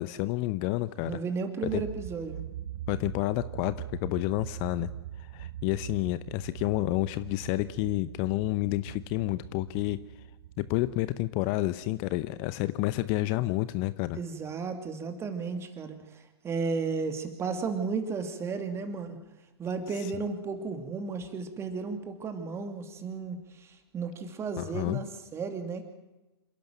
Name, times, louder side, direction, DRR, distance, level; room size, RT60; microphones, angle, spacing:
voice 1, 0.0-1.2 1.7-1.8 2.9-3.7 4.0-4.9 5.2-10.0 10.6-14.2 20.0-20.1 24.6-25.0, left 18 dB, 35° left, 15 dB, 0.7 m, -29 dB
voice 2, 1.0-2.4 14.1-19.2 19.6-25.8, right 4 dB, 20° right, 7 dB, 2.7 m, -34 dB
sound 1, 1.7-12.9, right 11 dB, 55° right, 1.8 m, -42 dB
27.0 x 12.0 x 9.2 m, 1.1 s
figure-of-eight pair, 115°, 14 cm